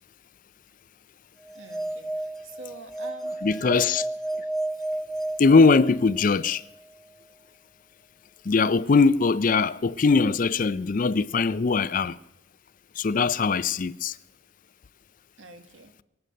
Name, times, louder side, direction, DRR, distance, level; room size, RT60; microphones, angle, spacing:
sound 1, 1.5-6.3, right 1 dB, ahead, 0.7 m, -32 dB
voice 1, 1.5-3.5 15.4-15.9, right 3 dB, 85° right, 1.8 m, -46 dB
voice 2, 3.4-4.1 5.4-6.6 8.4-12.2 13.0-14.2, left 4 dB, 45° left, 0.4 m, -21 dB
22.5 x 8.0 x 7.7 m
head